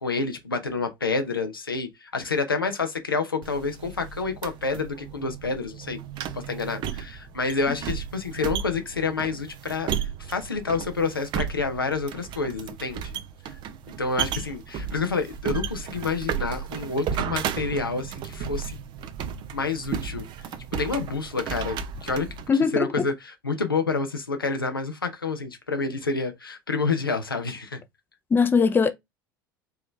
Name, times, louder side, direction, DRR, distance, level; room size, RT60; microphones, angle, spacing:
voice 1, 0.0-6.0 6.3-9.9 10.2-13.1 14.0-18.8 19.5-20.3 20.7-22.3 22.7-27.8, left 4 dB, 85° left, 0.8 m, -28 dB
sound 1, 3.4-22.5, right 8 dB, 45° right, 0.7 m, -34 dB
voice 2, 22.5-23.0 28.3-28.9, left 5 dB, 20° left, 0.6 m, -20 dB
4.7 x 3.1 x 3.2 m
figure-of-eight pair, 70°, 11 cm